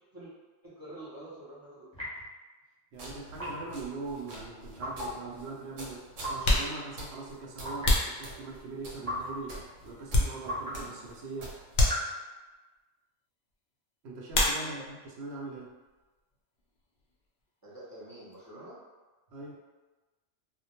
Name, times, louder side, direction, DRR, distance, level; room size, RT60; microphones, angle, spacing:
voice 1, 0.6-1.9 14.6-14.9 17.6-18.8, right 1 dB, 35° right, -10 dB, 0.3 m, -47 dB
sound 1, 1.9-2.3 3.3-3.7 4.8-5.2 6.2-6.5 7.6-8.0 9.0-9.4 10.4-10.8 11.8-12.1, equal, 5° left, 0.8 m, -36 dB
voice 2, 2.9-11.6 14.0-15.7 19.3-19.6, right 3 dB, 65° right, -2 dB, 0.8 m, -41 dB
sound 2, 2.9-12.0, right 1 dB, 85° right, 1.0 m, -48 dB
sound 3, 6.4-8.9 9.4-10.8 11.1-11.3 11.7-12.5 14.3-15.1 15.3-16.0 16.3-18.5, left 2 dB, 60° left, 0.6 m, -30 dB
2.1 x 2.1 x 2.8 m, 1.2 s
omnidirectional pair, 1.3 m